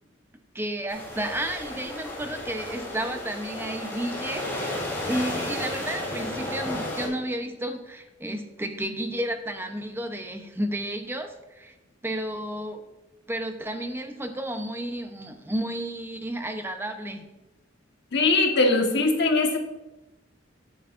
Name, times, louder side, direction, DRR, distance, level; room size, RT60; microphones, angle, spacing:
voice 1, 0.5-4.8 5.0-11.7 12.0-12.8 13.3-17.2, right 1 dB, 10° right, 5 dB, 0.8 m, -32 dB
sound 1, 0.9-7.1, left 1 dB, 15° left, 2.4 m, -33 dB
voice 2, 18.1-19.6, left 3 dB, 60° left, 3 dB, 1.4 m, -21 dB
11.5 x 8.1 x 2.6 m, 0.99 s
head